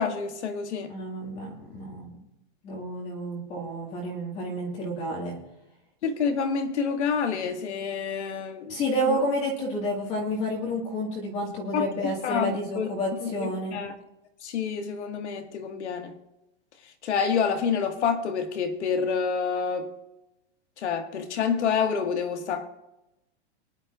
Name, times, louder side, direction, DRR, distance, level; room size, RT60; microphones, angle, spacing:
voice 1, 0.0-0.9 6.0-8.8 9.1-9.2 11.7-12.9 13.2-13.9 14.4-16.1 17.0-19.9 20.8-22.7, left 6 dB, 90° left, 2.0 m, -28 dB
voice 2, 0.9-2.1 2.6-5.4 8.7-13.8, equal, 20° left, 1.9 m, -30 dB
23.5 x 10.5 x 2.5 m
supercardioid pair, 180°, 33 cm